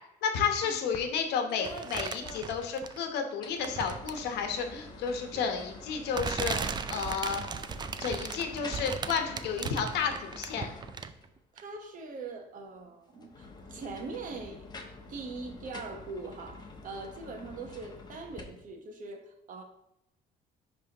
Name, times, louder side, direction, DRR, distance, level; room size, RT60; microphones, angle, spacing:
voice 1, 0.2-7.4 8.0-10.7, left 6 dB, 80° left, 5 dB, 1.0 m, -32 dB
sound 1, 0.9-1.1 1.3-2.9 3.3-11.4 13.1-18.4, left 2 dB, 25° left, 0.9 m, -47 dB
sound 2, 1.6-3.2 3.6-4.3 5.3-5.4 6.1-11.3 11.6-11.7, right 6 dB, 25° right, 0.4 m, -37 dB
voice 2, 11.5-14.7 15.1-19.6, right 3 dB, 50° right, 4 dB, 1.2 m, -42 dB
10.5 x 3.5 x 2.9 m, 0.85 s
cardioid pair, 110°, 17 cm